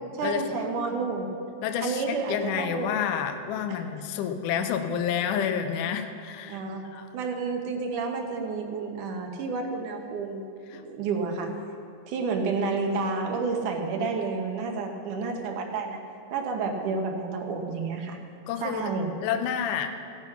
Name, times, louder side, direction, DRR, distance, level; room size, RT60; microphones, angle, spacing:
voice 1, 0.1-1.3 1.8-2.9 3.7-3.8 6.5-6.8 7.1-10.4 10.7-11.5 12.1-16.0 16.3-18.2 18.6-19.1, right 4 dB, 70° right, 3 dB, 2.5 m, -30 dB
voice 2, 1.6-6.6 6.9-7.1 10.7-10.8 18.5-18.9 19.2-19.9, left 8 dB, 75° left, 7 dB, 2.1 m, -29 dB
16.5 x 8.2 x 5.7 m, 2.4 s
omnidirectional pair, 3.9 m